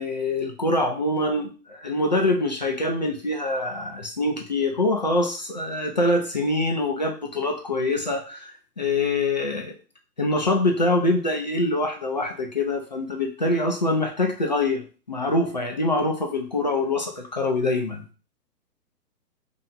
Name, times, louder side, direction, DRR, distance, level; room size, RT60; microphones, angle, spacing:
voice 1, 0.0-8.5 8.8-9.7 10.2-18.0, left 2 dB, 30° left, 2 dB, 0.4 m, -24 dB
3.2 x 2.8 x 3.8 m, 0.35 s
figure-of-eight pair, 130°, 48 cm